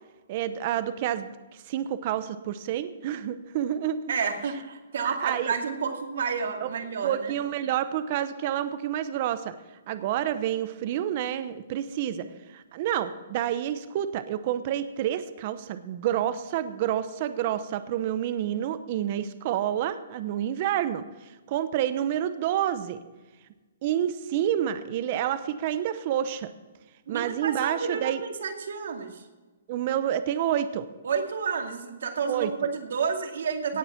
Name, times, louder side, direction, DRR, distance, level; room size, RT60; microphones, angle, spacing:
voice 1, 0.3-1.3 1.7-4.0 5.0-5.5 6.6-6.7 7.0-9.5 9.9-12.3 12.5-21.0 21.5-23.0 23.8-26.5 27.1-28.2 29.7-30.8 32.3-32.5, right 11 dB, 35° right, 12 dB, 0.8 m, -28 dB
voice 2, 4.1-7.3 27.1-29.2 31.0-33.8, right 6 dB, 70° right, 4 dB, 2.3 m, -30 dB
17.5 x 7.3 x 5.8 m, 1.2 s
hypercardioid pair, 160°, 0 cm